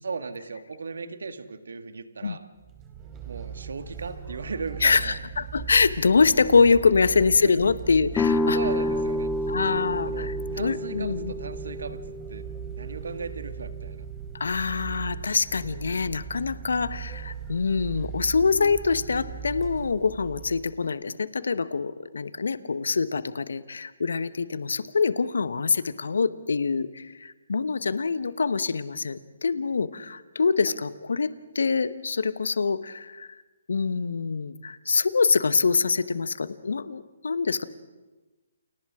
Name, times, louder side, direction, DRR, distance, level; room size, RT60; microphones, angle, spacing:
voice 1, 0.0-2.4 3.2-5.2 7.4-7.7 8.5-9.3 10.0-12.0 12.3-14.1 17.1-17.2 30.7-30.8, right 4 dB, 65° right, 9 dB, 1.9 m, -37 dB
sound 1, 2.6-20.8, right 7 dB, 20° right, 3.3 m, -39 dB
voice 2, 4.8-8.6 9.5-11.3 14.4-33.3 33.7-37.6, left 4 dB, 70° left, 14 dB, 1.1 m, -25 dB
sound 2, 8.1-13.9, left 2 dB, 10° left, 1.5 m, -29 dB
29.5 x 29.5 x 3.7 m, 1.2 s
figure-of-eight pair, 140°, 0 cm